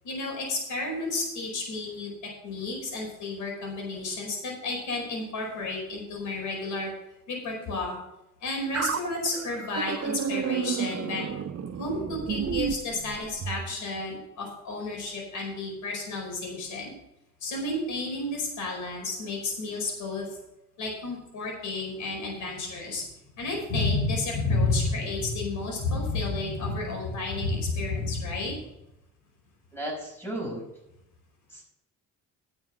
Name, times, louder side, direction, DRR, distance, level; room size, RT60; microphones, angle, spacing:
voice 1, 0.0-2.1 2.4-6.9 7.3-8.0 8.4-11.2 11.8-16.9 17.4-20.2 20.8-23.1 23.4-28.6, left 2 dB, 75° left, 0 dB, 4.9 m, -31 dB
sound 1, 8.7-13.7, right 7 dB, 55° right, 1.1 m, -31 dB
voice 2, 29.7-30.6 31.5-31.6, right 1 dB, 10° left, -2 dB, 5.2 m, -34 dB
10.5 x 7.2 x 6.5 m, 0.85 s
cardioid pair, 90°, 30 cm